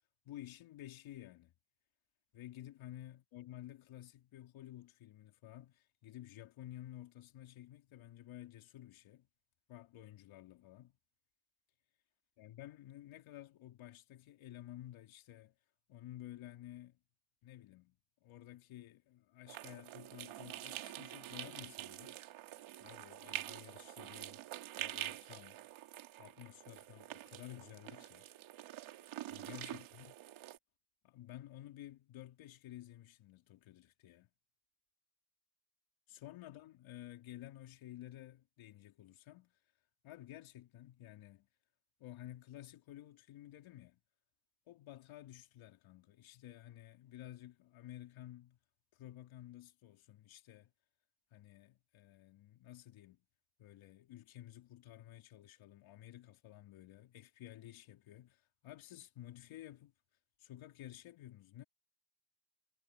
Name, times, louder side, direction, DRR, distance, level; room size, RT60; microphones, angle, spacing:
voice 1, 0.3-1.5 2.3-9.3 9.7-11.0 12.4-15.5 15.9-17.0 17.4-22.2 22.8-24.4 24.8-25.6 26.2-28.3 29.3-30.2 31.0-34.3 36.1-39.6 40.0-41.5 42.0-44.0 44.7-48.6 48.9-50.7 51.3-53.2 53.6-59.9 60.4-61.6, left 13 dB, 75° left, 3.5 m, -53 dB
sound 1, 19.5-30.6, right 14 dB, 75° right, 2.6 m, -47 dB
cardioid pair, 145°, 48 cm